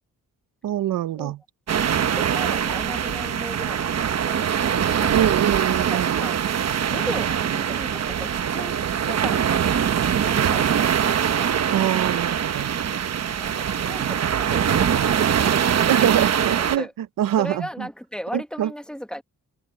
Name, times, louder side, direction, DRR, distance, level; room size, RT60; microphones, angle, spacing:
voice 1, 0.6-1.4 5.1-6.2 11.6-12.7 15.9-16.8 17.2-17.7 18.3-18.7, right 11 dB, 90° right, 0.7 m, -24 dB
sound 1, 1.7-16.8, right 8 dB, 50° right, 1.0 m, -23 dB
voice 2, 2.2-5.3 5.9-6.4 6.9-8.8 9.1-9.6 10.2-11.5 13.3-15.6 16.1-16.3 16.5-16.9 17.4-19.2, equal, 5° left, 1.2 m, -37 dB
wide cardioid pair, 150°, 32 cm